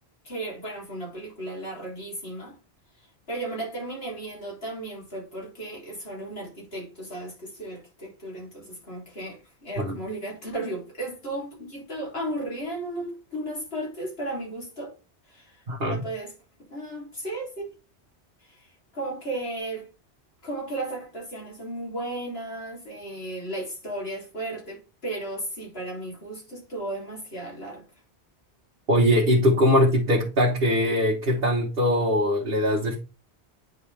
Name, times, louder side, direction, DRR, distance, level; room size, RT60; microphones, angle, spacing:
voice 1, 0.2-2.6 3.3-14.9 15.3-16.3 16.7-17.7 18.4-18.7 18.9-19.9 20.4-27.8, right 1 dB, 65° left, 3.6 m, -35 dB
voice 2, 15.7-16.1 28.9-33.0, equal, 55° right, 1.6 m, -21 dB
9.4 x 3.9 x 3.4 m
omnidirectional pair, 1.1 m